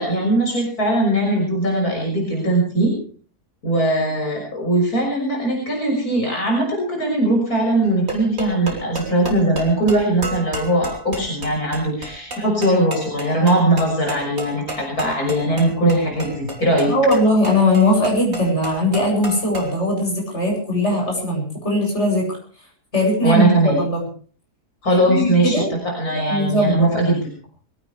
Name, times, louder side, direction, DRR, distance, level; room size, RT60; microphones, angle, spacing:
voice 1, 0.0-3.0 3.6-16.9 23.2-23.8 24.8-27.2, right 1 dB, 65° left, -1 dB, 6.9 m, -20 dB
sound 1, 7.8-19.8, right 2 dB, 60° right, 4.9 m, -33 dB
voice 2, 16.9-22.4 22.9-24.0 25.1-25.7 26.3-26.9, left 1 dB, 45° left, 0 dB, 8.5 m, -19 dB
23.0 x 18.0 x 3.4 m, 0.42 s
omnidirectional pair, 1.7 m